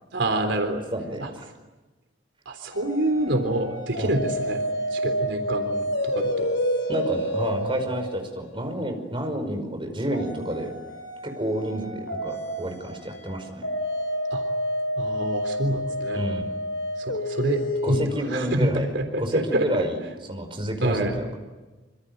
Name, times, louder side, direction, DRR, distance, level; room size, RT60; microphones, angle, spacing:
voice 1, 0.1-0.8 1.2-1.3 2.5-4.6 4.9-6.5 14.3-14.4 15.0-16.2 17.0-18.7 18.9-19.6 20.8-21.2, right 1 dB, 80° right, 5 dB, 3.5 m, -27 dB
voice 2, 0.9-1.5 4.0-4.1 6.9-10.7 11.2-13.7 16.1-16.5 17.8-18.9 19.2-21.3, right 1 dB, 30° right, 5 dB, 5.3 m, -29 dB
sound 1, 2.7-8.9 10.1-18.1, equal, 85° left, 3.6 m, -29 dB
26.5 x 26.0 x 8.0 m, 1.2 s
head